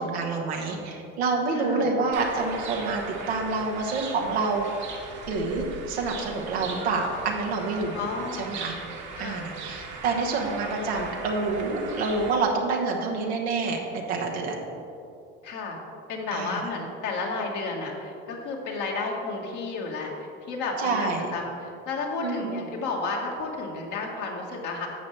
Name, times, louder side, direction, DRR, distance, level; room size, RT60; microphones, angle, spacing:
voice 1, 0.0-3.0 3.3-4.6 5.3-8.0 8.3-8.7 9.2-13.8 14.1-14.7 16.3-16.6 20.8-21.3 22.2-22.6, right 3 dB, 90° right, 0 dB, 1.3 m, -27 dB
voice 2, 1.5-1.9 7.9-8.6 9.2-9.5 15.4-15.8 16.1-20.1 20.5-24.9, left 3 dB, 70° left, -1 dB, 1.7 m, -32 dB
sound 1, 2.1-12.4, right 4 dB, 65° right, 1.6 m, -39 dB
10.5 x 7.5 x 3.3 m, 2.6 s
hypercardioid pair, 65°, 31 cm